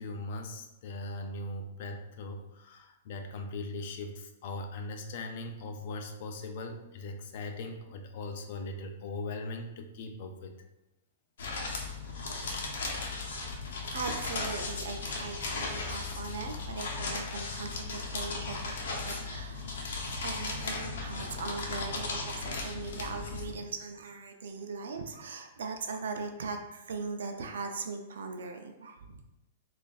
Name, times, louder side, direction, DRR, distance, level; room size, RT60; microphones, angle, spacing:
voice 1, 0.0-10.5 11.7-11.9 13.1-13.2, left 2 dB, 45° left, 4 dB, 0.5 m, -40 dB
sound 1, 11.4-23.5, left 3 dB, 75° left, 0.8 m, -36 dB
voice 2, 13.9-18.7 19.0-19.6 20.0-29.2, right 4 dB, 80° right, 5 dB, 0.5 m, -39 dB
3.3 x 2.5 x 3.9 m, 0.91 s
hypercardioid pair, 170°, 0 cm